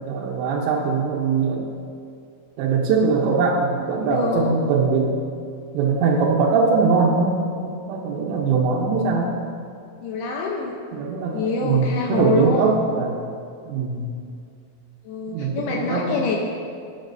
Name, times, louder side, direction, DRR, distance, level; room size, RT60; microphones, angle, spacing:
voice 1, 0.1-1.7 2.6-5.2 5.7-9.4 10.9-13.1 13.7-14.1 15.3-16.1, right 4 dB, 75° right, -3 dB, 2.8 m, -21 dB
voice 2, 3.9-4.6 10.0-10.8 11.3-12.7 15.0-16.5, left 3 dB, 85° left, -1 dB, 2.2 m, -25 dB
19.0 x 9.3 x 2.6 m, 2.4 s
omnidirectional pair, 5.7 m